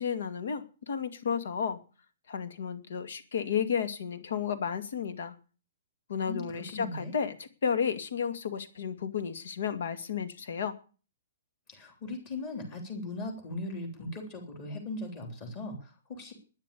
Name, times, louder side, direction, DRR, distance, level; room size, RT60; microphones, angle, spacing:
voice 1, 0.0-1.8 2.3-5.4 6.1-10.8, left 7 dB, 60° left, 10 dB, 2.3 m, -32 dB
voice 2, 6.2-7.1 11.7-16.3, left 2 dB, 20° left, 3 dB, 3.4 m, -39 dB
12.0 x 10.0 x 8.4 m, 0.36 s
hypercardioid pair, 180°, 0 cm